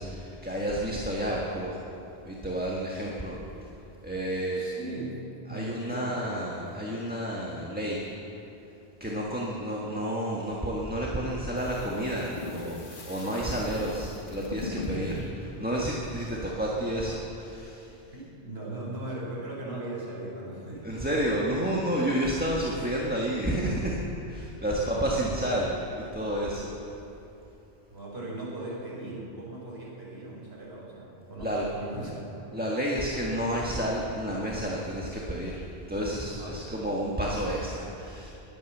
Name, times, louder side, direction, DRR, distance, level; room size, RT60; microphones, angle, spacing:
voice 1, 0.0-1.8 2.2-3.7 4.0-4.6 5.5-8.1 9.0-12.8 13.1-15.1 15.6-18.0 20.8-24.0 24.3-26.9 31.4-31.7 32.5-35.6 35.9-38.3, right 1 dB, 10° right, -4 dB, 1.5 m, -30 dB
voice 2, 4.6-6.3 14.9-15.3 17.9-21.0 24.7-25.3 27.9-32.3 36.4-36.8, right 2 dB, 70° right, -5 dB, 4.6 m, -39 dB
sound 1, 11.6-16.4, left 3 dB, 50° left, 1.8 m, -40 dB
21.5 x 8.9 x 7.3 m, 2.9 s
omnidirectional pair, 1.1 m